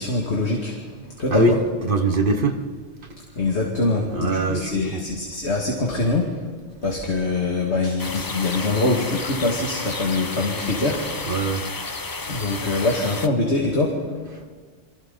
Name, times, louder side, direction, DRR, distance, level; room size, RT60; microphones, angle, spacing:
voice 1, 0.0-1.6 3.4-6.3 6.8-11.5 12.3-14.5, left 2 dB, 70° left, -1 dB, 2.4 m, -24 dB
voice 2, 1.3-2.6 4.1-5.1 11.2-11.6, right 2 dB, 50° right, 5 dB, 1.5 m, -22 dB
sound 1, 8.0-13.3, left 3 dB, 25° left, 0.6 m, -32 dB
29.0 x 24.0 x 4.0 m, 1.5 s
omnidirectional pair, 1.2 m